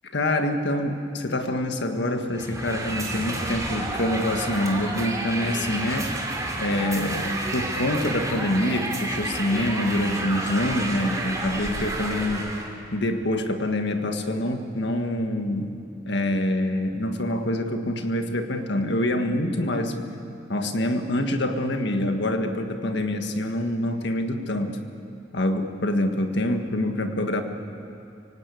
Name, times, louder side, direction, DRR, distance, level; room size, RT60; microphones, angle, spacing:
voice 1, 0.1-6.1 6.6-12.5 12.9-15.8 16.1-20.0 20.5-24.8 25.3-27.4, left 1 dB, 65° left, 5 dB, 1.7 m, -26 dB
sound 1, 2.3-12.7, right 2 dB, 20° right, 3.0 m, -30 dB
25.5 x 18.0 x 8.5 m, 2.7 s
head